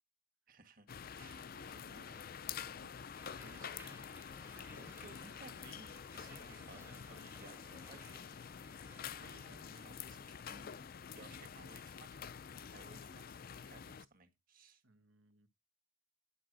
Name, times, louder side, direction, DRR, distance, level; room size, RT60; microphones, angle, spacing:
voice 1, 0.5-0.9 1.1-2.4 2.7-2.9 3.2-8.3 9.2-12.1 12.7-13.2 13.5-14.8, right 3 dB, 45° right, 1.8 m, -60 dB
sound 1, 0.9-14.0, left 7 dB, 50° left, 0.5 m, -48 dB
voice 2, 1.5-2.2 4.5-4.9 6.4-6.6 9.2-9.9 11.2-11.8 14.8-15.5, right 3 dB, 85° right, 1.3 m, -64 dB
sound 2, 3.1-9.9, right 2 dB, 10° right, 0.9 m, -62 dB
10.5 x 6.2 x 6.2 m
head